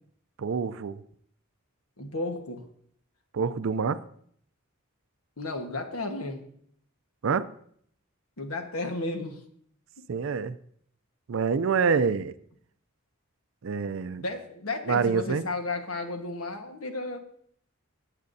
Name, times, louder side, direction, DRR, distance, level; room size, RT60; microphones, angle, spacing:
voice 1, 0.4-1.0 3.3-4.0 7.2-7.5 10.1-10.6 11.3-12.3 13.6-14.2 14.8-15.4, right 5 dB, 60° right, 13 dB, 0.4 m, -26 dB
voice 2, 2.0-2.6 5.4-6.4 8.4-9.4 14.2-17.2, left 2 dB, 75° left, 5 dB, 1.4 m, -33 dB
17.0 x 8.2 x 2.7 m, 0.64 s
head